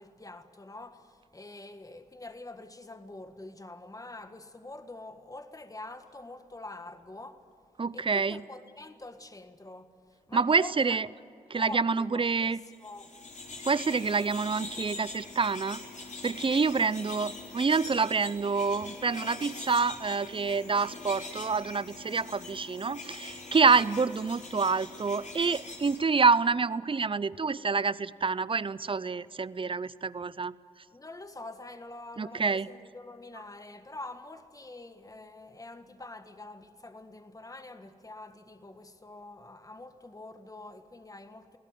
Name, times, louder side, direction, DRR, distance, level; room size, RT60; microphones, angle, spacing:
voice 1, 0.0-7.4 7.9-11.0 11.5-13.2 30.9-41.6, left 2 dB, 25° left, 1.7 m, -45 dB
voice 2, 7.8-8.4 10.3-11.1 11.5-12.6 13.6-15.8 16.2-30.6 32.2-32.7, right 4 dB, 40° right, 0.6 m, -27 dB
sound 1, 12.7-26.0, left 3 dB, 60° left, 4.3 m, -43 dB
23.0 x 17.0 x 9.4 m
supercardioid pair, 45°, 15 cm